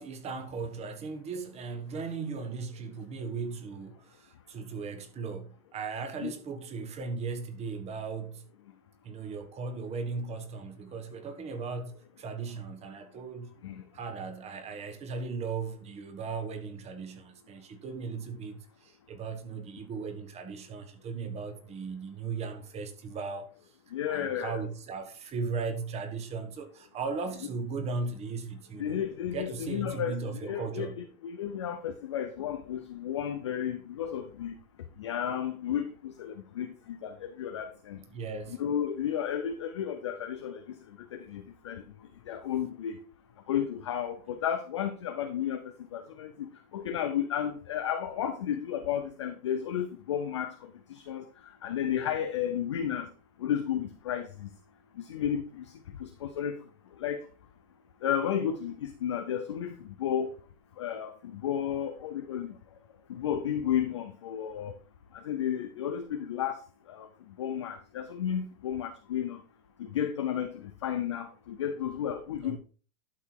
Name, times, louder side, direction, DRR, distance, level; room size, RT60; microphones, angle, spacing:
voice 1, 0.0-8.4 9.0-13.6 13.9-23.7 24.1-29.0 29.3-31.0 38.1-38.6 72.4-72.6, right 4 dB, 15° right, 1.2 m, -37 dB
voice 2, 23.9-24.6 28.8-34.6 35.0-38.0 38.6-40.8 41.1-41.8 42.3-43.0 43.5-45.6 45.9-51.2 51.6-53.1 53.4-54.5 55.0-55.7 56.0-56.6 57.0-57.2 58.0-60.3 60.8-62.5 63.1-64.7 65.1-66.6 66.9-67.1 67.4-69.4 69.8-72.6, left 9 dB, 20° left, 0.4 m, -33 dB
12.0 x 5.6 x 4.6 m
hypercardioid pair, 155°, 43 cm